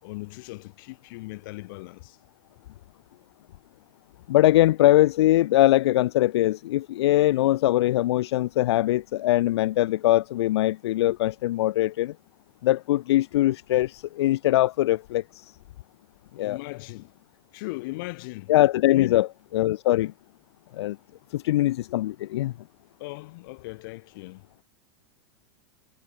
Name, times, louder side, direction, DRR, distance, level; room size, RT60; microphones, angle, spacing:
voice 1, 0.0-2.2 16.4-17.1 17.5-18.5 18.8-19.3 23.0-24.4, left 23 dB, 55° left, 3.8 m, -38 dB
voice 2, 4.3-12.1 12.6-15.5 16.4-16.6 18.5-19.3 19.5-20.1 20.7-21.0 21.3-22.5, left 15 dB, 80° left, 0.6 m, -22 dB
supercardioid pair, 160°, 14 cm